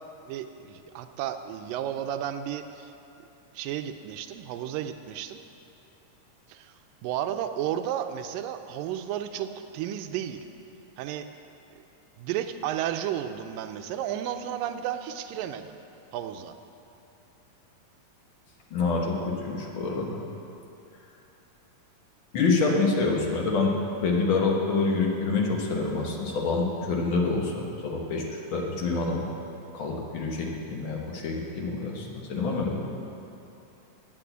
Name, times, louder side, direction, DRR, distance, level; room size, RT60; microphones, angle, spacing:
voice 1, 0.2-2.9 3.5-5.4 6.5-6.7 7.0-10.4 11.0-11.3 11.8-11.9 12.2-15.8 16.1-16.6 22.6-22.8, right 10 dB, 80° right, 8 dB, 2.2 m, -33 dB
voice 2, 18.7-20.2 22.3-23.7 24.0-29.3 29.7-32.8, left 3 dB, 55° left, -1 dB, 1.4 m, -27 dB
10.5 x 8.6 x 8.0 m, 2.8 s
omnidirectional pair, 4.0 m